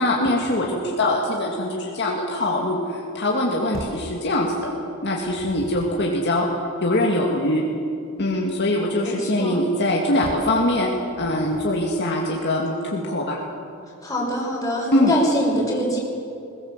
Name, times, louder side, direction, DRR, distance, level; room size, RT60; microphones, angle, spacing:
voice 1, 0.0-4.7 5.0-6.5 6.8-7.6 8.2-10.9 11.2-13.4 14.9-15.1, left 1 dB, 50° left, -2 dB, 2.2 m, -23 dB
sound 1, 3.7-4.1 5.0-6.1 10.2-10.6 11.2-11.9, right 1 dB, 45° right, 1.3 m, -39 dB
voice 2, 9.0-9.6 14.0-16.0, equal, 15° left, -3 dB, 5.8 m, -24 dB
21.0 x 19.0 x 7.5 m, 2.6 s
head